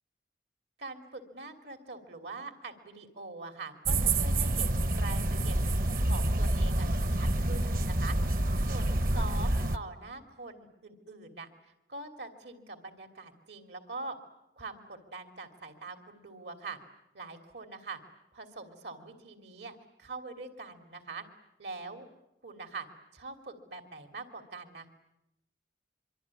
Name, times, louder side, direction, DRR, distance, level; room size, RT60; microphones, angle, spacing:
voice 1, 0.8-5.6 6.0-8.2 8.6-11.5 11.9-14.2 14.6-16.8 17.1-18.0 18.3-21.2 21.6-22.1 22.4-22.9 23.1-24.9, right 3 dB, 80° right, 6 dB, 3.0 m, -43 dB
sound 1, 3.8-9.8, right 1 dB, 50° right, 1.0 m, -28 dB
25.0 x 24.5 x 9.8 m, 0.88 s
head